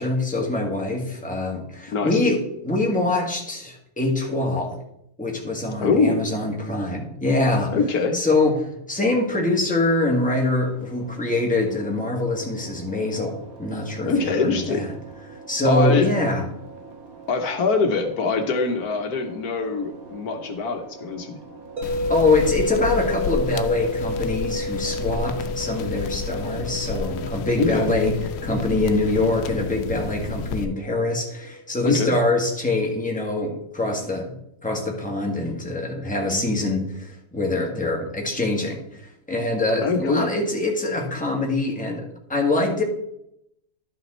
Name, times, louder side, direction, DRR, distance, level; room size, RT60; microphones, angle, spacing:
voice 1, 0.0-4.8 5.2-7.7 8.1-14.9 15.5-16.5 22.1-28.2 28.4-34.3 34.6-42.0 42.3-42.8, left 2 dB, 5° left, -1 dB, 1.6 m, -24 dB
voice 2, 5.8-6.2 7.7-8.2 14.1-14.9 15.6-16.1 17.3-21.4 27.6-27.9 31.8-32.1 39.8-40.2, left 4 dB, 70° left, 5 dB, 1.4 m, -23 dB
sound 1, 10.1-26.1, right 4 dB, 65° right, 1.9 m, -44 dB
sound 2, 21.8-30.6, left 6 dB, 85° left, 1.2 m, -32 dB
sound 3, 21.8-31.8, left 1 dB, 30° right, 2.1 m, -31 dB
11.5 x 5.7 x 4.3 m, 0.77 s
omnidirectional pair, 1.7 m